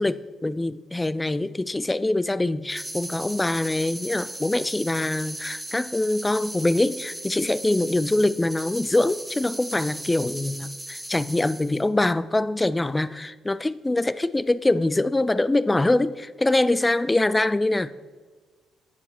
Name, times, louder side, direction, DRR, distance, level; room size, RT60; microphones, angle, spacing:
voice 1, 0.0-17.9, left 2 dB, 15° left, 17 dB, 0.3 m, -24 dB
sound 1, 2.7-11.9, right 1 dB, 10° right, 0.8 m, -37 dB
9.3 x 5.3 x 6.3 m, 1.5 s
cardioid pair, 90°, 0 cm